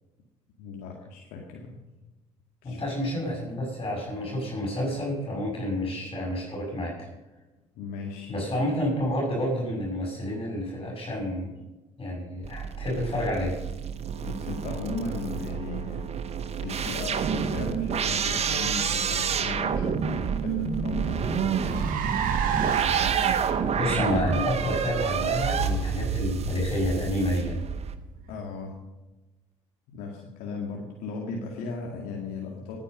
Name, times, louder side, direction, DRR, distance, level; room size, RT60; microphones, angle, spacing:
voice 1, 0.6-1.8 2.6-2.8 7.8-8.5 14.2-16.0 16.6-21.9 28.3-28.8 29.9-32.8, left 4 dB, 65° left, 0 dB, 2.1 m, -37 dB
voice 2, 2.6-7.1 8.3-11.6 12.0-13.5 23.7-27.6, left 1 dB, 30° left, -3 dB, 6.4 m, -29 dB
sound 1, 12.4-28.0, right 7 dB, 40° right, 1.3 m, -29 dB
Car, 20.5-28.3, right 7 dB, 60° right, 1.9 m, -31 dB
19.5 x 8.9 x 5.4 m, 1.1 s
hypercardioid pair, 55°, 16 cm